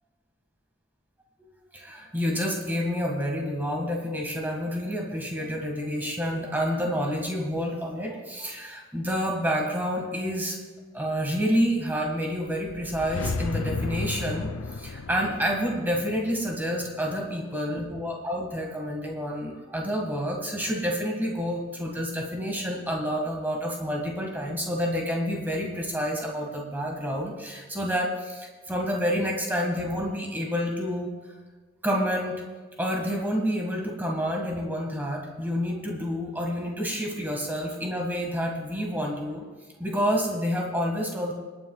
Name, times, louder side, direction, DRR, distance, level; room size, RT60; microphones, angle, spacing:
voice 1, 1.7-10.6 10.9-31.1 31.8-32.4 32.8-39.5 39.8-41.3, equal, 10° right, 0 dB, 1.9 m, -29 dB
sound 1, 12.5-17.5, left 3 dB, 85° left, 0.5 m, -34 dB
27.0 x 9.3 x 2.4 m, 1.3 s
head